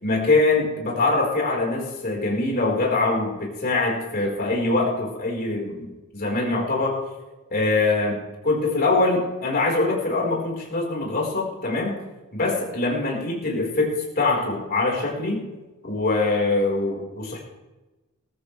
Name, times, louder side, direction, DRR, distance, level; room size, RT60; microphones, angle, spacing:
voice 1, 0.0-7.0 7.5-8.2 8.4-12.0 12.3-15.4 15.8-17.4, left 2 dB, 45° left, -2 dB, 4.5 m, -23 dB
20.0 x 13.5 x 3.4 m, 1.1 s
head